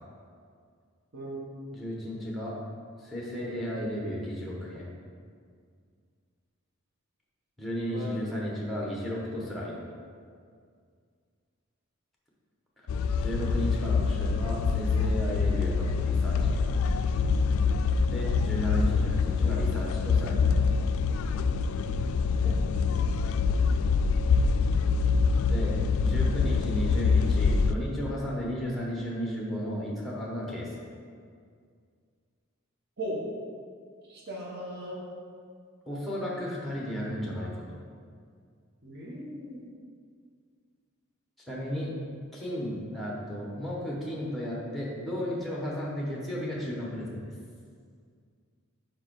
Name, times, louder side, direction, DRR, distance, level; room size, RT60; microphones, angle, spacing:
voice 1, 1.1-1.8 7.9-8.3 22.2-23.9 33.0-33.2 34.1-35.0 38.8-39.6, equal, 50° right, -5 dB, 1.1 m, -39 dB
voice 2, 1.7-2.6 3.0-4.9 7.6-9.8 12.8-12.9 13.2-16.8 18.1-20.6 25.4-30.7 35.9-37.8 41.5-41.9 42.3-47.3, equal, ahead, -4 dB, 1.0 m, -34 dB
sound 1, 12.9-27.7, left 5 dB, 80° left, 0.3 m, -25 dB
4.8 x 4.7 x 4.6 m, 2.1 s
head